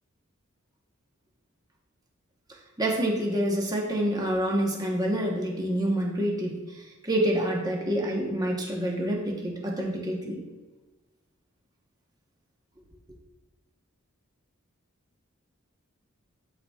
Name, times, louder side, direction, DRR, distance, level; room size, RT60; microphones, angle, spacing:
voice 1, 2.8-6.6 7.0-10.4, right 1 dB, 20° right, -1 dB, 1.0 m, -27 dB
12.0 x 4.2 x 2.3 m, 1.2 s
head